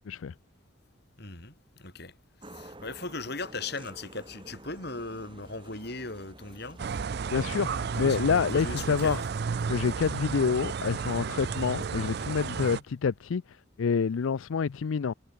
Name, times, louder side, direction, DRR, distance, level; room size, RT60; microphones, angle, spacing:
voice 1, 1.2-2.1 2.4-6.8 7.3-9.2 11.6-11.7 12.6-12.8, left 3 dB, 50° left, 4.3 m, -39 dB
sound 1, 2.4-7.5, right 1 dB, 25° right, 1.9 m, -50 dB
sound 2, 6.8-12.8, right 5 dB, 50° right, 0.4 m, -33 dB
voice 2, 7.3-9.2 9.7-15.1, left 6 dB, 75° left, 0.4 m, -27 dB
head